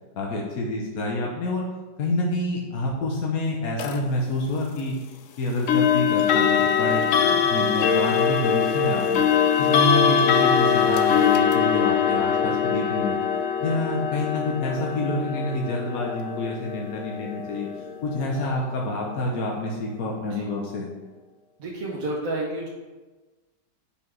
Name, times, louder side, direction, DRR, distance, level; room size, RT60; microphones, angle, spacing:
voice 1, 0.1-1.6 2.0-5.0 5.4-9.2 9.6-13.2 13.6-17.7 18.0-20.9, left 1 dB, 60° left, -2 dB, 1.3 m, -28 dB
sound 1, 3.8-4.0 5.7-18.5, left 7 dB, 75° left, 0.7 m, -22 dB
voice 2, 21.6-22.7, right 2 dB, 55° right, -5 dB, 1.5 m, -30 dB
5.2 x 5.1 x 6.0 m, 1.2 s
omnidirectional pair, 1.9 m